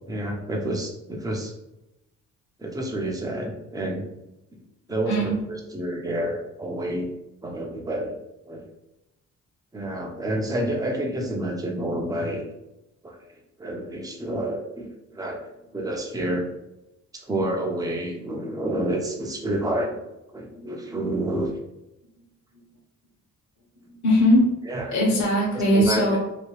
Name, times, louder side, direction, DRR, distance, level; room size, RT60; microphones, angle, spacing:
voice 1, 0.1-1.5 2.6-4.0 4.5-4.6 4.9-7.1 7.4-8.2 8.5-8.7 9.7-12.4 13.0-13.2 13.6-14.9 15.1-15.4 15.7-16.5 17.1-20.0 20.3-21.5 24.7-24.8 25.7-26.2, right 1 dB, 10° right, 0 dB, 0.7 m, -29 dB
voice 2, 5.0-5.4 20.5-20.9 23.9-24.5 24.9-26.2, equal, 65° left, -3 dB, 1.2 m, -21 dB
3.0 x 2.7 x 3.1 m, 0.93 s
cardioid pair, 90°, 30 cm